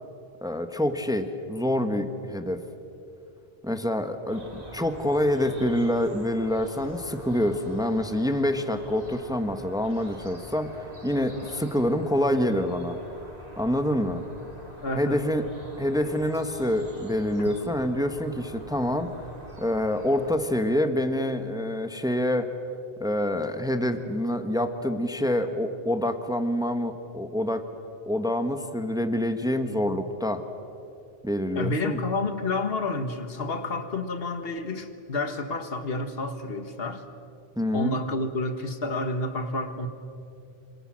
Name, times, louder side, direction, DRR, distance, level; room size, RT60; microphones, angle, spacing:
voice 1, 0.4-2.6 3.6-13.0 13.6-14.2 14.9-15.5 15.8-19.1 19.6-22.5 23.0-27.6 28.1-30.4 31.2-32.0 37.6-38.0, left 1 dB, 5° right, 8 dB, 1.3 m, -26 dB
sound 1, 4.3-20.3, right 1 dB, 40° right, 3.5 m, -45 dB
voice 2, 14.8-15.2 31.6-37.0 37.7-39.9, left 2 dB, 70° left, 9 dB, 1.8 m, -29 dB
27.0 x 26.5 x 7.6 m, 2.7 s
omnidirectional pair, 1.0 m